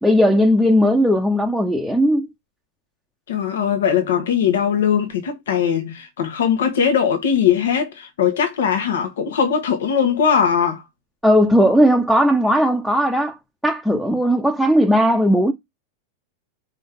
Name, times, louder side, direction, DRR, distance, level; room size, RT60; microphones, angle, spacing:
voice 1, 0.0-2.3 11.2-13.3 13.6-15.5, equal, ahead, 0.9 m, -17 dB
voice 2, 3.3-10.8, left 7 dB, 60° left, 1.6 m, -20 dB
5.2 x 5.1 x 3.8 m
figure-of-eight pair, 90°, 0 cm